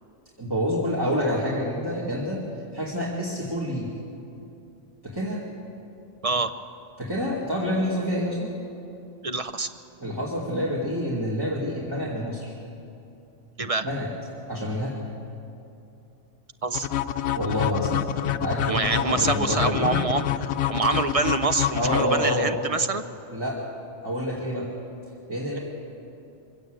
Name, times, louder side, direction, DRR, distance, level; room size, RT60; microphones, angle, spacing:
voice 1, 0.4-2.4 2.7-3.9 5.0-5.4 7.0-8.5 10.0-12.5 13.8-14.1 14.5-15.0 17.3-18.1 18.4-20.0 21.7-22.5 23.3-23.6 24.0-24.7 25.3-25.6, equal, 15° right, -4 dB, 2.4 m, -27 dB
voice 2, 6.2-6.5 9.2-9.7 13.6-13.9 16.6-17.0 18.7-23.0, right 3 dB, 40° right, 10 dB, 0.6 m, -26 dB
sound 1, 16.7-22.7, left 11 dB, 85° left, 1.1 m, -27 dB
24.5 x 16.5 x 8.0 m, 2.8 s
omnidirectional pair, 1.4 m